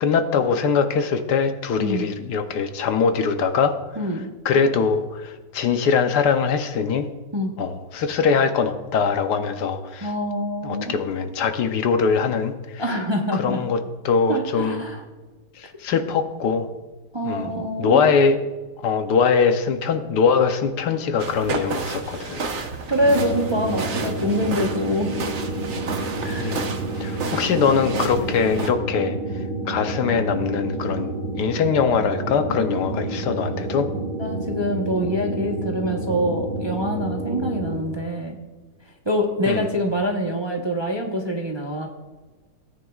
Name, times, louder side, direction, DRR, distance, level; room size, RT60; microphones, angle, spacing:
voice 1, 0.0-3.8 4.4-7.1 7.6-10.1 10.6-12.8 13.3-14.8 15.6-16.7 17.2-17.5 17.8-18.4 18.8-22.4 26.4-26.7 27.0-29.2 29.7-33.9 39.5-39.6, left 5 dB, 75° left, 8 dB, 1.3 m, -22 dB
voice 2, 4.0-4.3 7.3-7.5 10.0-11.0 12.8-13.6 14.3-15.0 17.1-18.0 22.9-25.1 26.2-26.6 34.2-38.4 39.0-41.9, equal, 20° right, 0 dB, 0.8 m, -25 dB
sound 1, 21.2-28.7, right 4 dB, 50° right, 1.1 m, -31 dB
sound 2, 23.0-37.8, right 2 dB, 50° left, 4.4 m, -29 dB
17.5 x 9.3 x 2.4 m, 1.2 s
omnidirectional pair, 1.8 m